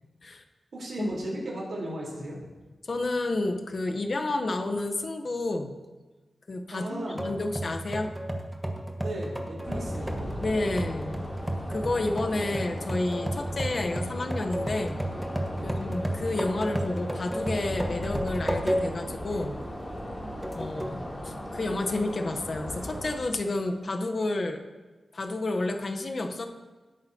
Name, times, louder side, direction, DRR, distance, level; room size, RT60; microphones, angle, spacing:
voice 1, 0.7-2.4 6.7-7.3 9.0-10.9 15.6-15.8 20.7-21.5, right 1 dB, 65° right, -3 dB, 3.7 m, -37 dB
voice 2, 2.9-5.7 6.5-8.1 10.4-11.2 11.7-15.0 15.6-19.6 20.5-24.6 25.1-26.5, left 2 dB, 50° left, 5 dB, 0.9 m, -30 dB
sound 1, 7.2-19.1 19.6-19.7 20.4-21.0, right 1 dB, 5° right, 1.3 m, -33 dB
sound 2, 9.6-23.2, equal, 20° left, 2.8 m, -38 dB
17.0 x 8.8 x 2.8 m, 1.3 s
wide cardioid pair, 80°, 0 cm